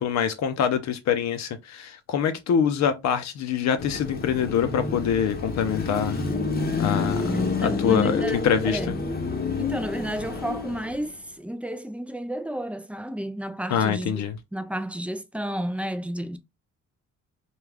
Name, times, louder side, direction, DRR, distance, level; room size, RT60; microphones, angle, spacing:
voice 1, 0.0-6.2 6.8-8.9 13.7-14.4, left 8 dB, 65° left, 0.6 m, -25 dB
Car passing by / Traffic noise roadway noise / Engine, 3.8-11.1, left 3 dB, 30° left, 0.8 m, -28 dB
voice 2, 7.3-9.1 9.6-14.3 14.5-16.4, right 1 dB, 5° right, 0.3 m, -32 dB
2.3 x 2.3 x 3.3 m
cardioid pair, 90°, 30 cm